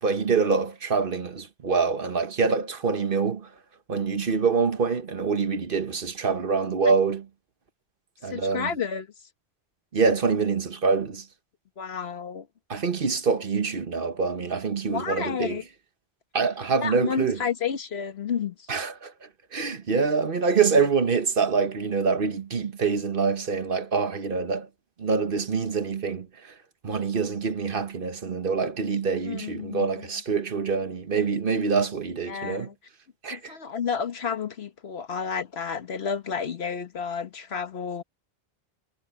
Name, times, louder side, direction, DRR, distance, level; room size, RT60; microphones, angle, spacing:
voice 1, 0.0-3.5 3.9-7.2 8.2-8.7 9.9-11.2 12.7-15.6 16.3-17.4 18.7-24.7 25.0-26.5 26.8-32.7 33.2-33.5, right 5 dB, 60° right, 1.3 m, -25 dB
voice 2, 8.3-9.1 11.8-12.5 14.9-15.6 16.8-18.7 19.7-19.8 29.2-30.1 32.3-32.7 33.3-38.0, left 6 dB, 75° left, 1.4 m, -31 dB
omnidirectional pair, 1.1 m